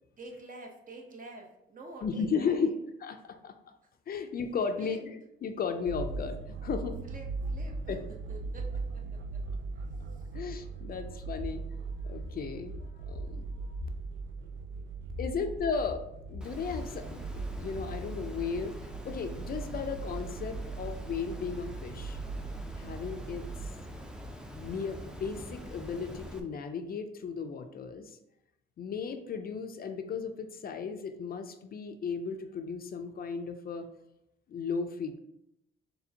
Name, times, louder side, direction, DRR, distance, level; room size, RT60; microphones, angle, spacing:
voice 1, 0.2-2.8 3.3-3.9 4.8-5.0 7.0-9.4 9.7-10.3, right 2 dB, 40° right, 2 dB, 0.9 m, -49 dB
voice 2, 2.0-2.7 3.0-3.2 3.4-3.5 4.1-5.1 5.4-7.0 7.9-8.0 10.3-11.6 12.0-13.7 15.2-16.0 16.3-18.8 19.0-22.2 22.8-23.7 24.5-28.2 28.8-33.9 34.5-35.2, left 5 dB, 50° left, 7 dB, 0.5 m, -35 dB
sound 1, 5.9-23.7, right 3 dB, 70° right, 0.4 m, -39 dB
Water, 16.4-26.4, equal, 5° right, 0.5 m, -44 dB
4.2 x 3.4 x 2.8 m, 0.82 s
cardioid pair, 90°, 20 cm